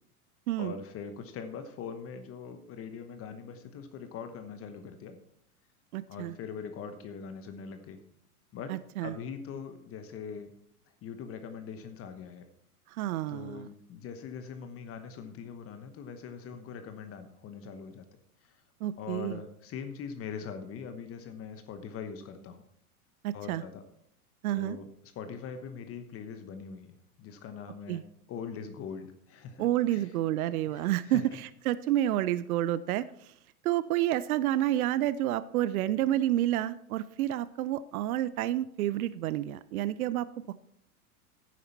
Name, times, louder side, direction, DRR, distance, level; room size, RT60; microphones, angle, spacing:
voice 1, 0.6-5.2 6.1-8.0 8.5-8.7 9.0-10.5 11.0-12.5 13.3-18.0 18.4-18.6 19.0-22.6 23.3-23.8 24.5-28.0 28.3-30.1 30.7-31.3, left 6 dB, 30° left, 8 dB, 1.1 m, -42 dB
voice 2, 5.9-6.3 8.7-9.1 12.9-13.7 18.8-19.4 23.2-23.6 24.4-24.8 27.9-28.0 29.6-33.1 33.6-40.5, right 13 dB, 70° right, 16 dB, 0.6 m, -29 dB
10.5 x 9.3 x 4.2 m, 0.73 s
hypercardioid pair, 110°, 45 cm